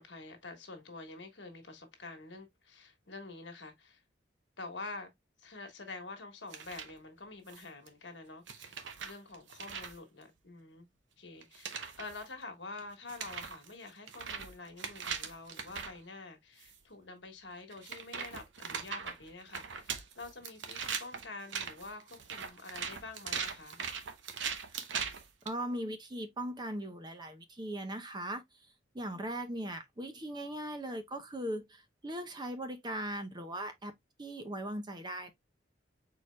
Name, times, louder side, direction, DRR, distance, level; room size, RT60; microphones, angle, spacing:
voice 1, 0.0-4.0 4.6-5.1 5.4-10.9 11.2-23.8, left 3 dB, 75° left, 1.4 m, -47 dB
sound 1, 6.5-6.9 7.5-7.9 8.5-10.0 11.4-12.3 12.8-12.9 13.1-16.0 16.6-16.8 17.7-25.5, right 6 dB, 80° right, 0.8 m, -40 dB
voice 2, 25.4-28.4 28.9-33.9 34.2-35.3, right 1 dB, 25° right, 0.6 m, -39 dB
4.6 x 4.3 x 2.2 m
head